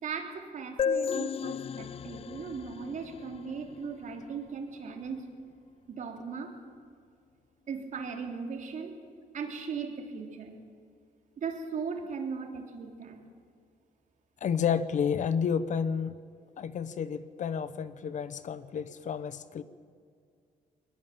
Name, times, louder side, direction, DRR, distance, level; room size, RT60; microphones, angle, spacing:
voice 1, 0.0-5.2 5.9-6.6 7.7-9.0 9.3-10.6 11.4-13.2, right 5 dB, 60° right, 3 dB, 3.4 m, -38 dB
sound 1, 0.8-4.3, left 7 dB, 40° left, 0.5 m, -34 dB
voice 2, 14.4-16.1 16.6-19.6, left 7 dB, 55° left, 14 dB, 1.0 m, -30 dB
21.5 x 20.5 x 7.5 m, 2.2 s
cardioid pair, 115°, 15 cm